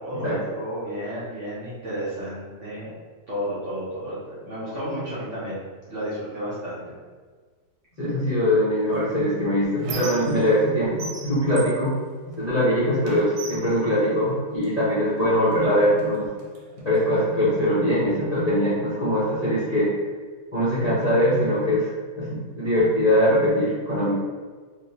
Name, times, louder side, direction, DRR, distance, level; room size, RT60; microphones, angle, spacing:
voice 1, 0.0-2.9 3.3-5.6 5.9-6.8, equal, 45° right, -10 dB, 1.1 m, -32 dB
voice 2, 8.0-11.9 12.4-16.3 16.8-19.9 20.5-21.9 22.1-24.1, equal, 30° left, -11 dB, 0.7 m, -22 dB
Squeak, 8.9-10.7 11.0-12.7 13.0-14.7 15.5-15.6 16.0-17.0, right 3 dB, 85° right, 1.4 m, -38 dB
3.3 x 3.1 x 2.8 m, 1.5 s
omnidirectional pair, 2.2 m